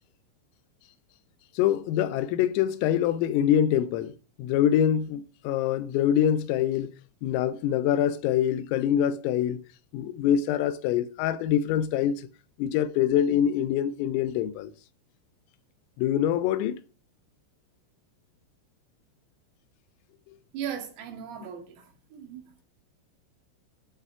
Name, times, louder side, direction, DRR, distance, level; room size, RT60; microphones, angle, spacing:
voice 1, 1.6-4.1 4.4-6.9 7.2-9.6 9.9-12.3 12.6-14.7 16.0-16.8, left 10 dB, 90° left, 3.5 m, -25 dB
voice 2, 20.5-22.6, right 8 dB, 85° right, 5.1 m, -38 dB
12.0 x 6.3 x 8.9 m
omnidirectional pair, 5.9 m